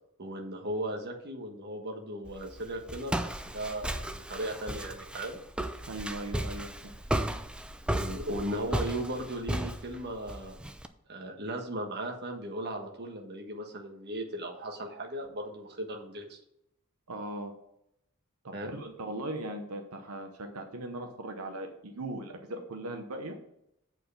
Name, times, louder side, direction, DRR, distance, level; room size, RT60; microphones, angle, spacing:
voice 1, 0.2-5.4 7.9-10.6 11.1-16.4 18.5-18.7, right 1 dB, 50° right, 2 dB, 1.4 m, -37 dB
Walk footsteps, 2.3-10.9, right 1 dB, 5° right, 0.4 m, -35 dB
voice 2, 5.9-7.0 17.1-17.5 18.4-23.4, right 1 dB, 80° right, 4 dB, 1.0 m, -39 dB
7.9 x 4.6 x 6.9 m, 0.78 s
head